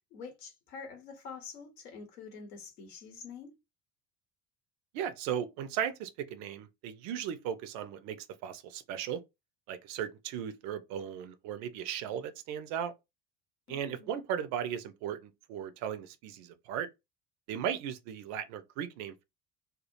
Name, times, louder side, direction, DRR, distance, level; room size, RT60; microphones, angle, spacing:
voice 1, 0.0-3.6 13.7-14.3, left 5 dB, 70° left, 0.8 m, -47 dB
voice 2, 4.9-8.2 8.4-9.2 9.7-12.9 13.7-16.9 17.5-19.2, right 9 dB, 40° right, 0.4 m, -36 dB
2.3 x 2.1 x 2.9 m
figure-of-eight pair, 60°, 49 cm